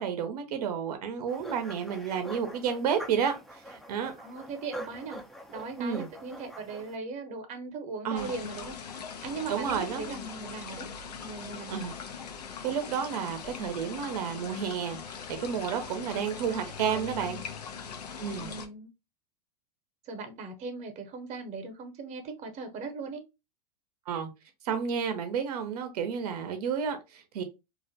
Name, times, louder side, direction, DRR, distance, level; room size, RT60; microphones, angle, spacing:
voice 1, 0.0-4.1 5.8-6.1 8.0-8.3 9.5-10.2 11.7-11.9 12.6-17.4 18.2-18.5 24.1-24.3 24.6-27.4, right 7 dB, 70° right, 0.6 m, -31 dB
sound 1, 1.3-7.0, right 1 dB, ahead, 0.4 m, -44 dB
voice 2, 4.2-5.2 5.5-10.9 11.2-11.8 15.9-16.2 16.5-17.4 18.4-18.9 20.1-23.2, right 4 dB, 35° right, 0.8 m, -39 dB
sound 2, 8.1-18.7, left 6 dB, 85° left, 0.5 m, -41 dB
2.4 x 2.1 x 2.7 m
hypercardioid pair, 105°, 20 cm